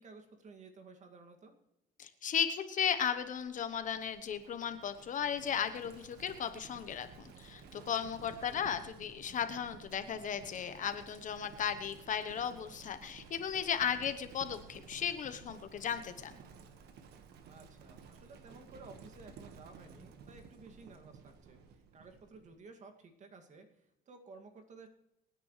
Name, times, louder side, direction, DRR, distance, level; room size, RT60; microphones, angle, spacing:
voice 1, 0.0-1.6 8.5-8.7 17.5-24.9, right 3 dB, 45° right, 5 dB, 2.3 m, -55 dB
voice 2, 2.0-16.4, left 8 dB, 50° left, 10 dB, 1.1 m, -36 dB
Livestock farm animals working animals, 2.9-22.6, right 5 dB, 75° right, 1.6 m, -55 dB
25.0 x 9.7 x 3.3 m, 0.84 s
cardioid pair, 110°, 17 cm